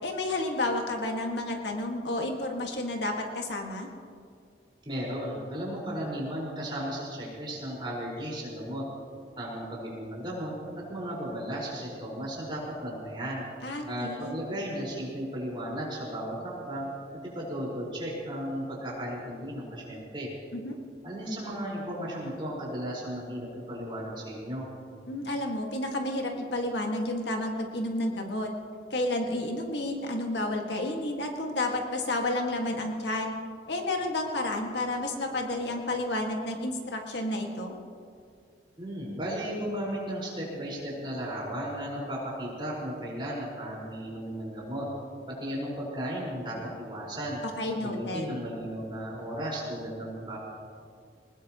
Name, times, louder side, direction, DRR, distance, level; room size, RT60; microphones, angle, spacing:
voice 1, 0.0-3.9 13.6-14.4 20.5-20.8 25.1-28.5 28.9-33.3 33.7-37.8 47.6-48.3, left 1 dB, 75° left, 2 dB, 1.9 m, -31 dB
voice 2, 4.8-8.8 9.4-13.5 13.9-16.9 17.3-20.3 21.0-24.7 38.8-44.9 45.3-47.4 47.8-50.4, equal, 25° right, -5 dB, 4.8 m, -35 dB
21.0 x 20.0 x 3.0 m, 2.2 s
head